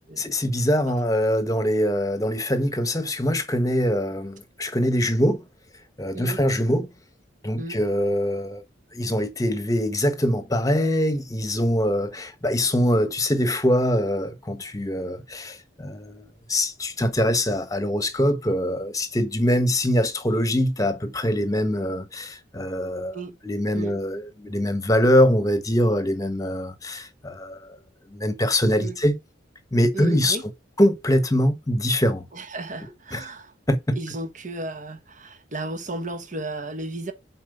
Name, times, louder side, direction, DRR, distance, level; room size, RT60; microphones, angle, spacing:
voice 1, 0.2-5.4 6.0-6.9 7.4-8.6 8.9-27.8 28.1-29.2 29.7-30.4 30.8-32.3 33.1-33.2 33.7-34.0, equal, 20° left, 1.2 m, -23 dB
voice 2, 29.9-30.4 32.3-33.5 34.0-37.1, right 2 dB, 45° right, 1.4 m, -34 dB
7.2 x 4.7 x 5.2 m
head